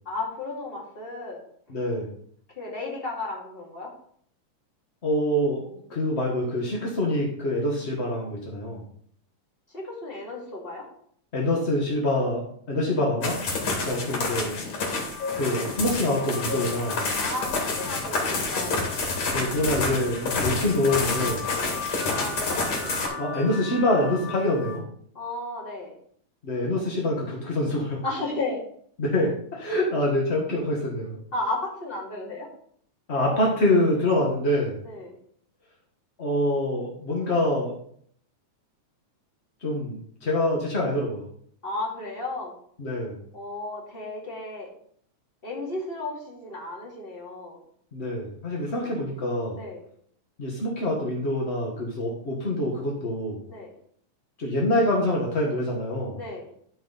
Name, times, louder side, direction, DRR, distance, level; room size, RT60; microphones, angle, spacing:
voice 1, 0.0-1.4 2.5-3.9 9.7-10.9 17.2-18.8 22.1-22.7 25.1-25.9 28.0-28.6 31.3-32.5 34.8-35.2 41.6-42.5 43.3-44.7 45.4-47.6 49.5-49.8 53.5-53.7 56.1-56.5, left 2 dB, 20° left, -3 dB, 2.2 m, -33 dB
voice 2, 1.7-2.1 5.0-8.8 11.3-13.4 13.8-14.9 15.4-17.0 19.3-21.5 23.2-24.8 26.4-28.0 29.0-31.2 33.1-34.8 36.2-37.7 39.6-41.2 42.8-43.2 47.9-49.6 50.4-53.4 54.4-56.2, left 1 dB, 45° left, -2 dB, 0.9 m, -25 dB
sound 1, 13.2-23.1, left 3 dB, 60° left, 3.2 m, -29 dB
sound 2, 14.8-24.8, left 4 dB, 85° left, 3.6 m, -38 dB
12.0 x 5.5 x 4.0 m, 0.62 s
omnidirectional pair, 3.5 m